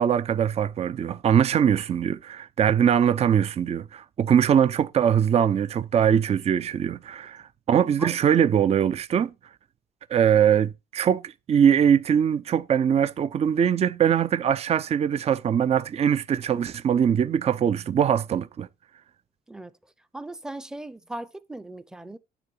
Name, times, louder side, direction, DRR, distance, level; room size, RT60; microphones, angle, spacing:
voice 1, 0.0-9.3 10.1-18.7, right 8 dB, 40° right, 0.6 m, -22 dB
voice 2, 20.1-22.2, right 1 dB, 5° right, 0.7 m, -38 dB
9.7 x 3.8 x 7.1 m
cardioid pair, 110°, 17 cm